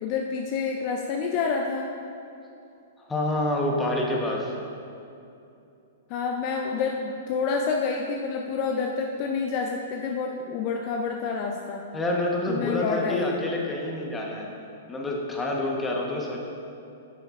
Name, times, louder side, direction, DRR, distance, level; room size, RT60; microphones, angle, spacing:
voice 1, 0.0-1.9 6.1-11.9 12.5-13.4, left 5 dB, 45° left, 2 dB, 0.5 m, -28 dB
voice 2, 3.1-4.5 11.9-14.5 14.9-16.4, left 1 dB, 15° left, -1 dB, 1.2 m, -27 dB
9.5 x 6.6 x 2.5 m, 2.6 s
hypercardioid pair, 120°, 0 cm